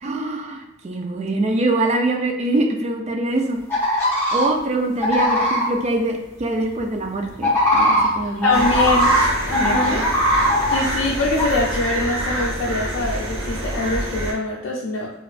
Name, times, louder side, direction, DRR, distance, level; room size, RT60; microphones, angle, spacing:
voice 1, 0.0-3.6 4.3-8.7 9.6-10.1, right 2 dB, 35° right, 3 dB, 0.4 m, -24 dB
sound 1, 3.7-4.5 5.0-5.6 7.4-9.2 9.5-10.9 11.4-11.5, equal, 10° left, 1.2 m, -19 dB
voice 2, 8.4-9.2 9.4-10.0 10.7-15.1, left 2 dB, 70° left, -3 dB, 0.4 m, -23 dB
sound 2, 8.5-14.3, right 1 dB, 75° right, 0.9 m, -26 dB
4.2 x 2.4 x 2.4 m, 0.95 s
head